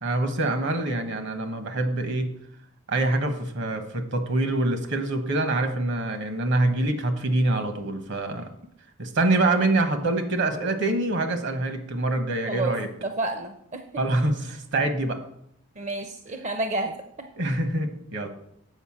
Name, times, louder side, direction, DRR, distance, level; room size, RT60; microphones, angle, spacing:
voice 1, 0.0-2.3 2.9-8.5 9.0-12.9 14.0-15.2 17.4-18.3, right 2 dB, 60° right, 7 dB, 1.3 m, -25 dB
voice 2, 13.0-13.8 15.8-17.3, right 2 dB, 35° right, 5 dB, 0.7 m, -30 dB
8.1 x 5.1 x 7.3 m, 0.73 s
head